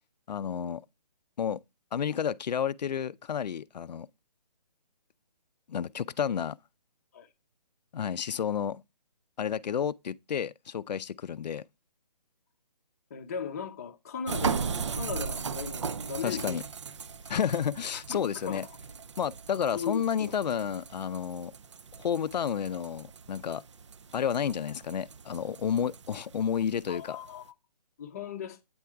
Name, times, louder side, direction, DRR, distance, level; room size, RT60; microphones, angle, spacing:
voice 1, 0.3-0.8 1.4-1.6 1.9-4.1 5.7-6.6 7.9-8.8 9.4-11.6 16.2-16.6 17.3-18.6 19.2-21.5 22.0-23.6 24.1-27.2, left 8 dB, 85° left, 0.4 m, -31 dB
voice 2, 13.1-16.6 17.9-18.6 19.7-20.3 26.9-27.5 28.0-28.6, left 6 dB, 25° left, 0.7 m, -37 dB
sound 1, 14.3-27.4, right 6 dB, 45° right, 0.4 m, -38 dB
8.7 x 3.4 x 4.5 m
hypercardioid pair, 170°, 21 cm